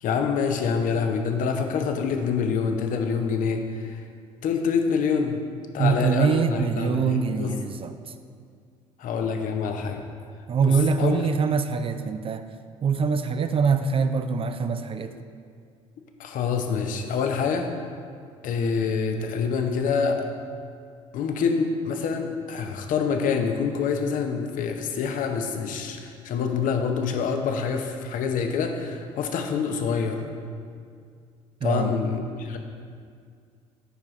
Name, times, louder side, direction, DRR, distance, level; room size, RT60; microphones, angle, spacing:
voice 1, 0.0-4.0 4.4-5.4 5.7-7.5 9.0-10.0 10.6-11.2 16.2-17.7 18.4-20.3 21.1-30.2 31.6-32.6, left 6 dB, 55° left, 5 dB, 0.7 m, -26 dB
voice 2, 5.8-7.9 10.5-12.5 12.8-15.1 31.6-31.9, right 5 dB, 35° right, 9 dB, 0.4 m, -24 dB
9.3 x 4.8 x 3.1 m, 2.2 s
hypercardioid pair, 55°, 16 cm